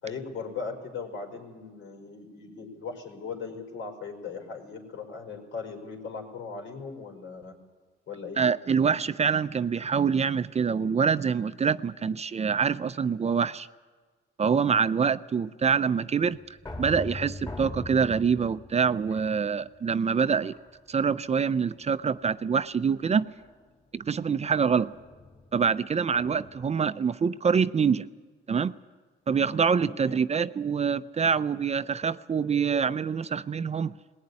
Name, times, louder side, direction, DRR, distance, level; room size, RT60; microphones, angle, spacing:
voice 1, 0.0-7.5 8.1-8.4 29.9-30.4, left 5 dB, 75° left, 3 dB, 4.8 m, -38 dB
voice 2, 8.4-13.7 14.4-16.4 16.8-20.6 20.9-23.3 23.9-24.9 25.5-28.1 28.5-28.7 29.3-33.9, right 6 dB, 35° right, 14 dB, 0.6 m, -25 dB
sound 1, 16.2-19.9 20.5-21.1 21.5-21.9 23.4-26.8, left 2 dB, 20° left, 2.4 m, -43 dB
19.5 x 17.5 x 9.7 m, 1.4 s
cardioid pair, 90°, 20 cm